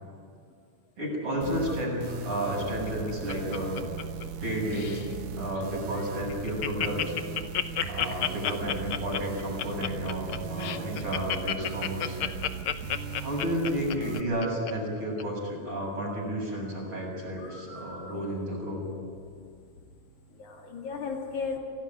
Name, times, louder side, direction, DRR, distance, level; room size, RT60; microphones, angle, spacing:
voice 1, 1.0-3.8 4.4-7.1 7.9-12.2 13.2-18.8, equal, 40° right, -2 dB, 8.2 m, -32 dB
sound 1, 1.4-14.2, right 7 dB, 70° right, 2.4 m, -38 dB
Laughter, 2.7-4.4 4.7-5.1 5.6-5.7 5.9-6.0 6.3-14.7 15.2-15.3, left 10 dB, 85° left, 1.1 m, -31 dB
voice 2, 7.8-8.3 8.8-9.0 10.4-11.0 11.7-12.8 17.4-18.2 20.3-21.6, left 4 dB, 70° left, 0 dB, 3.9 m, -39 dB
25.5 x 17.5 x 9.4 m, 2.2 s
omnidirectional pair, 3.6 m